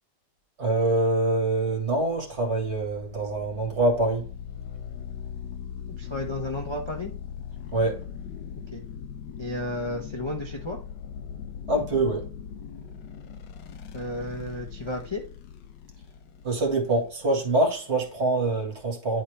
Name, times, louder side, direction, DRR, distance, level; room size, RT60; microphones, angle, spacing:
voice 1, 0.6-4.2 7.7-8.0 11.7-12.3 16.4-19.2, right 2 dB, 40° right, 2.0 m, -25 dB
sound 1, 1.8-18.6, left 8 dB, 80° left, 1.3 m, -40 dB
voice 2, 6.0-7.1 8.7-8.8 9.4-10.8 13.9-15.2, left 1 dB, 20° left, 0.8 m, -32 dB
10.0 x 4.3 x 3.3 m
omnidirectional pair, 1.9 m